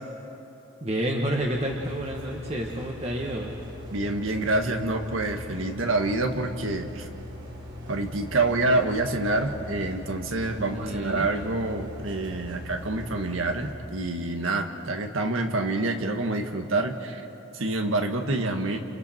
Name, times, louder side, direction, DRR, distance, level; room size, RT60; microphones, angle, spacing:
voice 1, 0.8-3.6 10.6-11.3, right 1 dB, 30° right, 0 dB, 1.5 m, -29 dB
sound 1, 1.4-13.7, left 1 dB, 60° right, 3.8 m, -41 dB
voice 2, 3.9-7.1 7.9-17.2 17.5-18.8, right 2 dB, 85° right, 5 dB, 1.7 m, -27 dB
29.5 x 29.0 x 4.5 m, 3.0 s
head